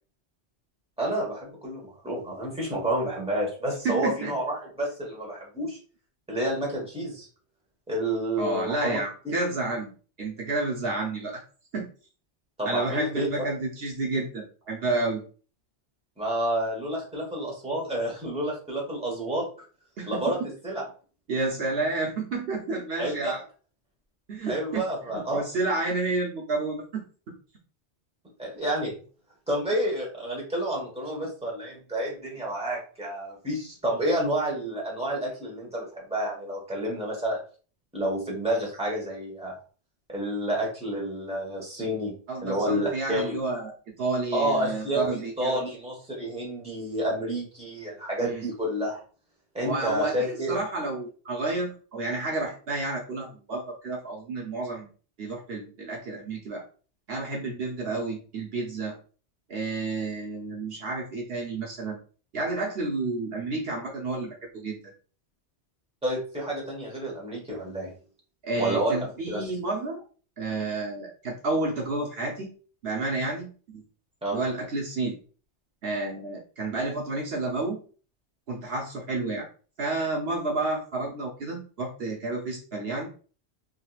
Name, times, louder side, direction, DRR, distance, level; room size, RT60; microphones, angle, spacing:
voice 1, 1.0-5.8 6.3-7.3 7.9-9.0 12.6-13.4 16.2-19.5 20.1-20.4 20.6-20.8 23.0-23.3 24.5-25.4 28.4-28.9 29.5-37.4 37.9-39.5 40.1-43.4 44.3-49.0 49.5-50.6 66.0-67.9 68.6-69.0 69.3-69.4 74.2-74.4, right 1 dB, 5° right, -3 dB, 1.3 m, -29 dB
voice 2, 3.8-4.3 8.4-9.9 10.2-11.4 11.7-11.9 12.6-15.2 20.0-20.5 21.3-23.4 24.3-24.9 25.1-27.1 42.3-45.6 48.2-48.4 49.6-54.9 55.2-56.6 57.1-59.0 59.5-62.0 62.3-64.8 68.4-70.0 70.4-72.5 72.8-73.8 74.3-75.1 75.8-77.8 78.5-79.5 79.8-83.1, right 3 dB, 65° right, -2 dB, 0.9 m, -30 dB
3.7 x 2.8 x 2.4 m, 0.39 s
omnidirectional pair, 1.2 m